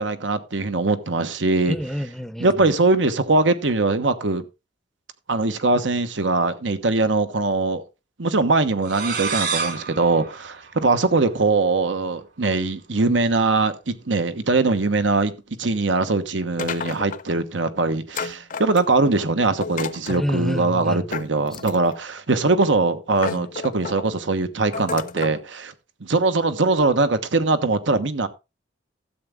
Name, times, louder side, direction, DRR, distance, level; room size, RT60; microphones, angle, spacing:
voice 1, 0.0-1.8 2.4-4.4 5.3-7.8 8.2-15.3 15.6-25.7 26.0-28.3, right 3 dB, 85° right, 1.1 m, -21 dB
voice 2, 1.7-2.7 20.1-21.1, equal, ahead, 0.6 m, -28 dB
sound 1, 8.8-11.4, right 5 dB, 60° right, 3.2 m, -30 dB
sound 2, 16.6-17.4 18.1-19.1 19.6-20.3 21.1-22.0 22.7-22.8 23.2-24.1 24.7-25.4, left 5 dB, 45° left, 0.6 m, -32 dB
13.0 x 8.1 x 3.6 m
head